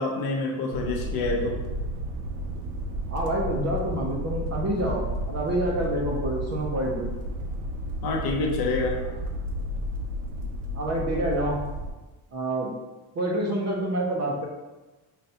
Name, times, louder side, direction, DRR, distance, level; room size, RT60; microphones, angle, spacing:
voice 1, 0.0-1.6 8.0-9.0, left 3 dB, 50° left, 0 dB, 0.6 m, -27 dB
sound 1, 0.7-11.9, equal, 85° right, 0.7 m, -32 dB
voice 2, 3.1-7.1 10.7-11.6 12.3-12.7 13.2-14.5, right 1 dB, 35° right, -2 dB, 0.4 m, -27 dB
5.4 x 2.2 x 2.7 m, 1.2 s
cardioid pair, 175°, 50 cm